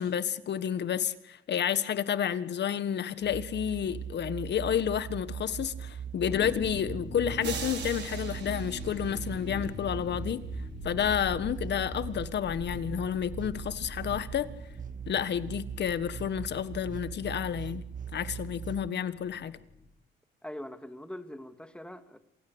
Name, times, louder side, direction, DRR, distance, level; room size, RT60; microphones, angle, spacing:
voice 1, 0.0-10.4 10.8-14.5 15.1-17.8 18.1-19.5, left 9 dB, 60° left, 13 dB, 1.6 m, -30 dB
sound 1, 3.2-18.9, right 8 dB, 40° right, 0.9 m, -40 dB
sound 2, 6.2-19.9, left 4 dB, 30° left, 7.1 m, -45 dB
sound 3, 7.4-9.8, right 6 dB, 60° right, 5.3 m, -41 dB
voice 2, 20.4-22.2, left 1 dB, 5° left, 8 dB, 2.1 m, -42 dB
27.5 x 16.5 x 8.0 m, 0.83 s
cardioid pair, 90°, 20 cm